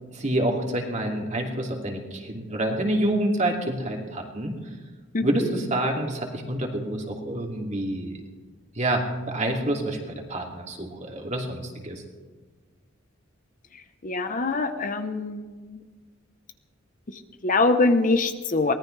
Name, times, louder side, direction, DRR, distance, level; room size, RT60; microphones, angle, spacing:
voice 1, 0.1-4.5 5.2-8.2 8.8-12.0, right 1 dB, 35° right, 1 dB, 2.6 m, -27 dB
voice 2, 14.0-15.8 17.1-18.7, left 3 dB, 45° left, 8 dB, 0.9 m, -24 dB
23.5 x 18.5 x 3.3 m, 1.4 s
head